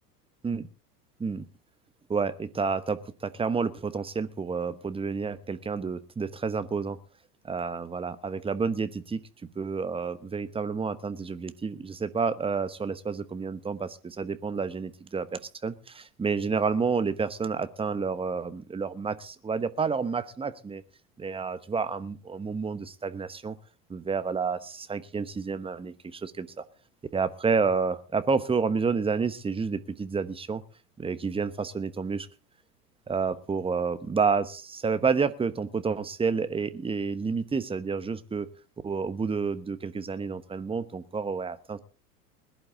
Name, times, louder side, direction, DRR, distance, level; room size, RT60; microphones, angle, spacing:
voice 1, 2.1-7.0 7.4-9.2 9.6-20.8 21.2-23.6 23.9-26.6 27.1-30.6 31.0-32.3 33.1-38.5 38.8-41.8, right 5 dB, 10° right, 12 dB, 1.1 m, -29 dB
21.0 x 11.5 x 3.8 m, 0.37 s
figure-of-eight pair, 85°, 48 cm